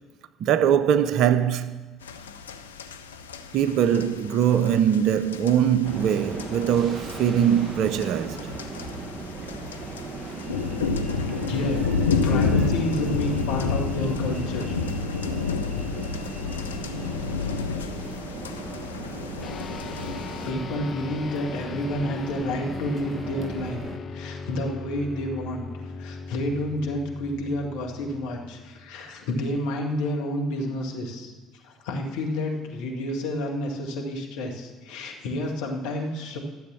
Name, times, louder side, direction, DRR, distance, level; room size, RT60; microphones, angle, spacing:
voice 1, 0.4-2.0 3.5-8.4, right 9 dB, 60° right, 0.6 m, -22 dB
sound 1, 2.0-20.5, left 5 dB, 85° left, 0.5 m, -30 dB
sound 2, 5.8-24.0, right 3 dB, 35° right, 1.2 m, -38 dB
voice 2, 11.2-11.8 12.2-14.8 20.4-23.8 24.1-25.7 26.0-36.4, left 1 dB, 70° left, 1.9 m, -30 dB
sound 3, 19.4-29.1, left 4 dB, 45° left, 0.7 m, -39 dB
13.0 x 7.9 x 7.0 m
hypercardioid pair, 55°, 0 cm